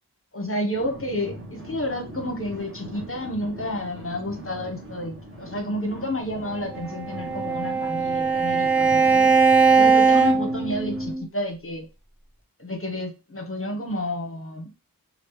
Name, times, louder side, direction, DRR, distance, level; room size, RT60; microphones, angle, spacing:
voice 1, 0.3-9.4 9.7-11.9 12.6-14.7, left 1 dB, 35° left, 3 dB, 0.8 m, -30 dB
sound 1, 0.7-11.1, right 1 dB, 35° right, 1.0 m, -41 dB
Bowed string instrument, 6.8-11.2, right 4 dB, 5° right, 0.6 m, -20 dB
3.1 x 2.5 x 3.1 m, 0.28 s
wide cardioid pair, 45°, 36 cm